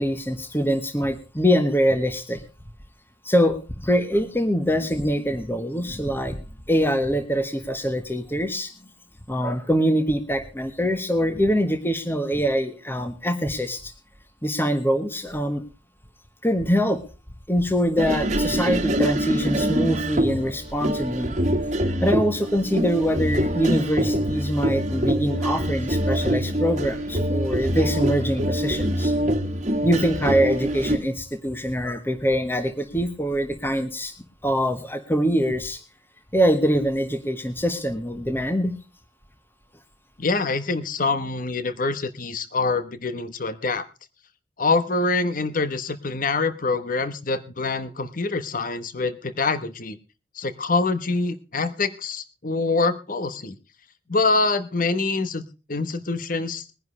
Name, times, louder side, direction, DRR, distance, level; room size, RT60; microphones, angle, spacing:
voice 1, 0.0-2.4 3.2-6.4 6.7-8.9 9.3-13.9 14.4-15.6 16.4-17.0 17.5-21.3 22.0-29.1 29.8-34.1 34.4-35.8 36.3-38.7, equal, 10° left, 8 dB, 1.4 m, -24 dB
sound 1, 18.0-31.0, right 1 dB, 40° right, 1.6 m, -25 dB
voice 2, 40.2-43.9 44.6-50.0 50.3-53.6 54.1-56.7, left 3 dB, 50° left, 12 dB, 1.1 m, -25 dB
21.5 x 10.5 x 3.2 m, 0.31 s
head